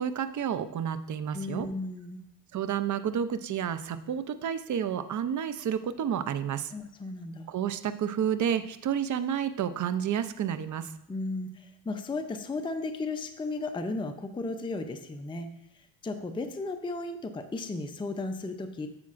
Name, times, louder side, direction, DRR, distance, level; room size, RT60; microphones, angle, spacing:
voice 1, 0.0-1.7 2.5-6.7 7.5-10.9, right 8 dB, 40° right, 11 dB, 0.6 m, -30 dB
voice 2, 1.3-2.3 6.7-7.5 11.1-15.5 15.8-18.9, left 2 dB, 10° left, 7 dB, 0.5 m, -35 dB
9.6 x 7.2 x 2.5 m, 0.75 s
cardioid pair, 105°, 47 cm